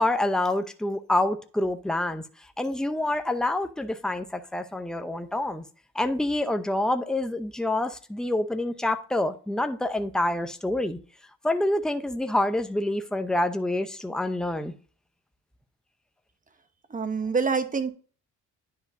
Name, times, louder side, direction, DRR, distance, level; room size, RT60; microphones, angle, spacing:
voice 1, 0.0-2.2 2.6-5.6 5.9-11.0 11.4-14.7, left 1 dB, ahead, 0.7 m, -27 dB
voice 2, 16.9-17.9, right 5 dB, 25° right, 1.1 m, -26 dB
10.0 x 4.9 x 2.7 m
cardioid pair, 90°, 30 cm